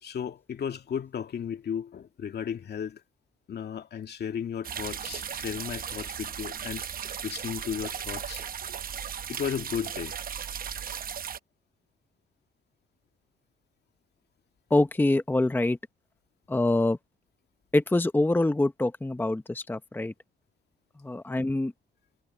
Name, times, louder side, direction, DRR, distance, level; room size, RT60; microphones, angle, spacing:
voice 1, 0.0-3.0 3.5-8.4 9.3-10.2, left 8 dB, 55° left, 2.4 m, -35 dB
sound 1, 4.6-11.4, right 8 dB, 45° right, 0.9 m, -36 dB
voice 2, 14.7-15.8 16.5-17.0 17.7-20.1 21.0-21.7, left 2 dB, 10° left, 1.0 m, -25 dB
cardioid pair, 90°, 20 cm